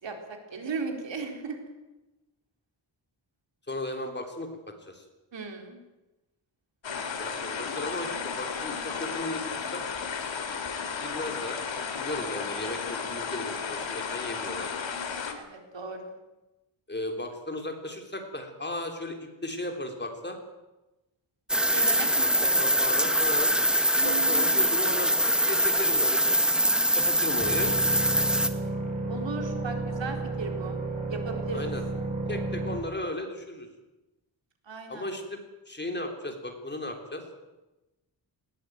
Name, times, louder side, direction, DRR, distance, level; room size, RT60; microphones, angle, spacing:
voice 1, 0.0-1.6 5.3-5.8 15.3-16.1 21.7-22.5 24.0-24.8 29.1-30.8 31.1-31.7 34.6-35.1, right 4 dB, 70° right, 3 dB, 4.3 m, -36 dB
voice 2, 3.7-5.0 7.1-9.8 11.0-11.6 12.0-14.7 16.9-20.4 22.2-23.5 23.9-26.4 26.9-27.7 31.5-31.8 32.3-33.7 34.9-35.4 35.7-37.2, left 1 dB, 25° left, 4 dB, 3.5 m, -35 dB
sound 1, 6.8-15.3, left 6 dB, 75° left, 3.0 m, -34 dB
sound 2, 21.5-28.5, equal, ahead, 1.4 m, -23 dB
sound 3, 27.4-32.8, right 2 dB, 20° right, 5.9 m, -32 dB
20.0 x 18.5 x 9.2 m, 1.0 s
wide cardioid pair, 145°, 45 cm